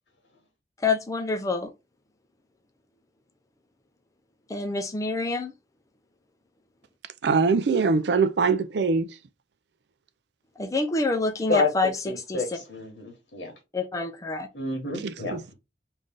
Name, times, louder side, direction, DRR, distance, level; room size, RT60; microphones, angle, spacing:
voice 1, 0.8-1.7 4.5-5.5 10.6-11.9 12.3-12.4 13.7-14.5, left 3 dB, 20° left, 0.5 m, -27 dB
voice 2, 7.2-9.1 15.0-15.4, right 4 dB, 65° right, 0.4 m, -22 dB
voice 3, 12.0-13.5 14.5-15.5, left 3 dB, 85° left, 1.5 m, -29 dB
3.2 x 2.6 x 3.7 m
head